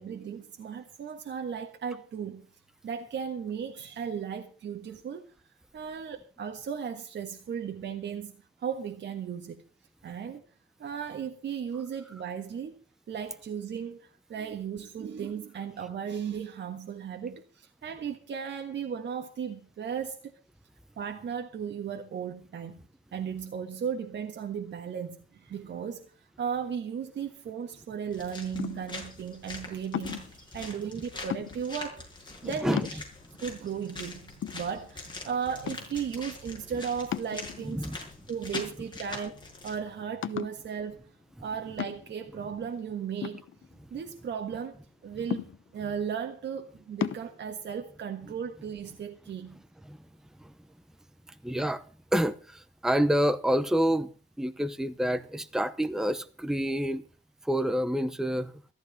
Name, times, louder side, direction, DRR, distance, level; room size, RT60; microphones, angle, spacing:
voice 1, 0.0-2.5 2.8-5.2 5.7-8.3 8.6-9.6 10.0-10.4 10.8-12.7 13.1-20.3 21.0-22.7 23.1-33.0 33.4-37.9 38.3-41.1 41.4-43.4 43.9-49.6, right 7 dB, 60° right, 1.6 m, -36 dB
sound 1, 28.1-39.7, left 3 dB, 20° left, 5.8 m, -44 dB
sound 2, 28.6-29.0 29.9-30.4 31.3-31.8 32.3-32.4 32.7-33.4 33.9-34.0 34.4-35.2 35.7-36.1 37.1-37.8 38.5-39.2 39.5-39.6 40.2-40.7 41.8-42.3 43.2-44.1 45.3-45.9 47.0-47.3, left 10 dB, 70° left, 0.9 m, -35 dB
voice 2, 32.4-32.9 37.7-38.0 49.9-50.0 50.4-50.5 51.4-51.8 52.1-54.1 54.4-57.0 57.4-58.5, equal, ahead, 0.8 m, -28 dB
14.5 x 13.5 x 5.2 m
wide cardioid pair, 145°, 21 cm